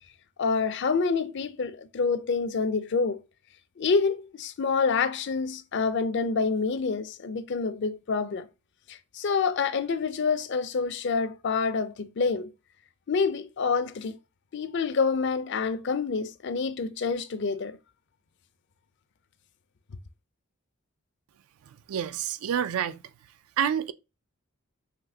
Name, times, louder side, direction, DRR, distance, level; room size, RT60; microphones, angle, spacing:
voice 1, 0.4-3.2 3.8-8.5 8.9-12.5 13.1-14.2 14.5-17.8, left 5 dB, 55° left, 0.4 m, -27 dB
voice 2, 21.9-23.0 23.6-23.9, right 8 dB, 75° right, 0.4 m, -28 dB
5.9 x 3.0 x 2.7 m
head